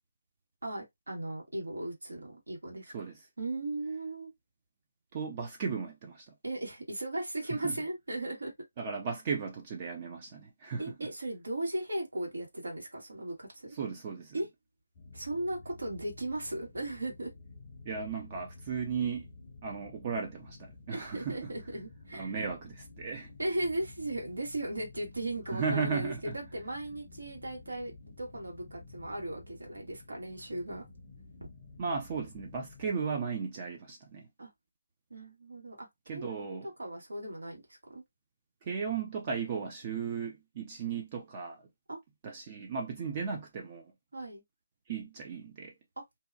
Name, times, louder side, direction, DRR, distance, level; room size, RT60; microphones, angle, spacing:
voice 1, 0.6-4.3 6.4-8.5 10.8-13.8 14.3-14.5 15.1-17.3 20.9-22.4 23.4-30.8 34.4-34.5 35.1-38.0 41.9-42.0 44.1-44.4, right 1 dB, 85° right, 1.4 m, -37 dB
voice 2, 5.1-6.3 7.5-7.8 8.8-11.1 13.7-14.4 17.9-19.3 19.6-21.5 22.1-23.3 25.5-26.3 31.8-34.3 36.1-36.7 38.6-41.6 42.2-43.9 44.9-45.7, right 5 dB, 25° right, 0.4 m, -36 dB
sound 1, 14.9-32.9, left 3 dB, 25° left, 0.5 m, -52 dB
2.7 x 2.2 x 2.5 m
hypercardioid pair, 165°, 0 cm